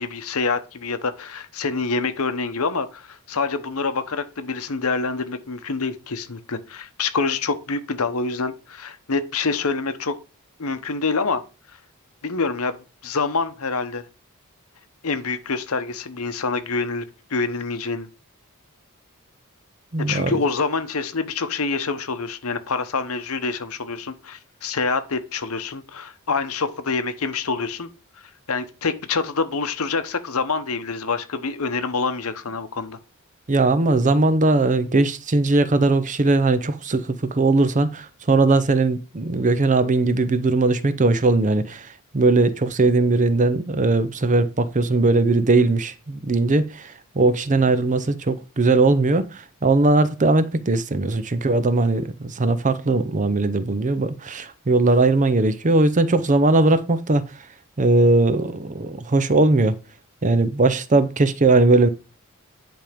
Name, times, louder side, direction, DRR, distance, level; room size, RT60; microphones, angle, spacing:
voice 1, 0.0-10.2 10.6-11.4 12.2-12.7 13.0-14.0 15.0-17.0 17.3-18.1 20.0-27.9 28.5-33.0, left 4 dB, 70° left, 1.0 m, -26 dB
voice 2, 19.9-20.4 33.5-41.9 42.1-57.2 57.8-59.8 60.2-61.9, right 3 dB, 35° right, 0.6 m, -19 dB
10.5 x 3.5 x 5.1 m
head